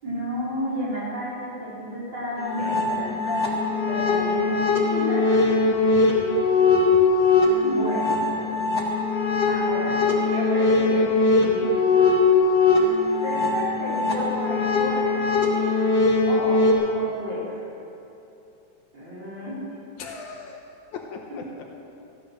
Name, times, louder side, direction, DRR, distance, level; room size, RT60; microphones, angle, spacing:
voice 1, 0.0-5.5 7.6-8.2 9.4-11.1 11.3-12.3 12.8-12.9 13.2-15.1 16.3-16.7 16.9-17.6 18.9-19.6 21.3-21.4, equal, 35° right, -8 dB, 4.5 m, -32 dB
sound 1, 2.4-16.7, left 3 dB, 45° left, 1.3 m, -21 dB
voice 2, 2.6-3.0 5.9-6.0 6.9-7.0 8.1-8.5 20.0-20.6 20.9-21.6, left 5 dB, 75° left, 1 dB, 2.1 m, -39 dB
14.0 x 10.0 x 6.5 m, 2.8 s
omnidirectional pair, 3.7 m